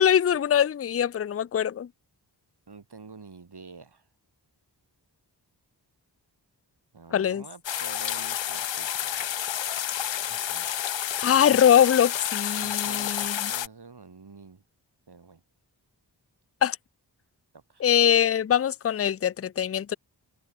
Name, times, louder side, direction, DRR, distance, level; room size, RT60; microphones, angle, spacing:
voice 1, 0.0-1.9 7.1-7.4 11.2-13.3 16.6-16.8 17.8-20.0, left 9 dB, 35° left, 0.5 m, -22 dB
voice 2, 2.7-4.1 6.9-9.2 10.3-10.7 12.6-14.6 15.1-15.4 17.5-17.9, right 4 dB, 60° right, 5.9 m, -47 dB
sound 1, 7.6-13.7, left 10 dB, 80° left, 0.8 m, -30 dB
open air
cardioid pair, 50°, 44 cm